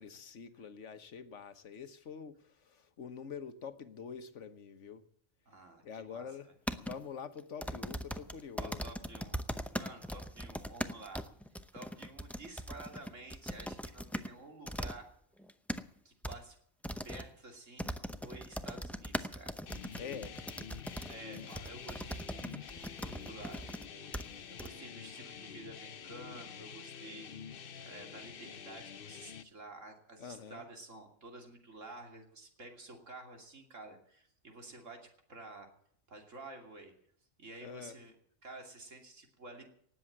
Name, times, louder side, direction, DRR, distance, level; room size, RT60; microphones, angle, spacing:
voice 1, 0.0-5.0 5.8-6.5 6.8-9.0 19.9-20.4 30.2-30.7 37.6-38.0, left 6 dB, 70° left, 11 dB, 1.5 m, -46 dB
voice 2, 5.5-6.3 8.6-9.4 9.7-11.3 11.7-15.1 16.0-16.6 17.0-17.9 18.2-19.5 21.1-27.5 27.8-35.7 36.1-36.9 37.4-38.1 38.4-39.7, right 2 dB, 75° right, 3 dB, 3.2 m, -51 dB
sound 1, 6.7-7.0 7.6-14.3 14.7-15.0 15.4-15.8 16.2-16.4 16.8-17.2 17.8-23.9 24.1-24.2 24.6-24.7, equal, ahead, 0.5 m, -40 dB
sound 2, 19.7-29.4, left 7 dB, 50° left, 0.9 m, -48 dB
18.5 x 7.8 x 8.6 m, 0.64 s
omnidirectional pair, 1.3 m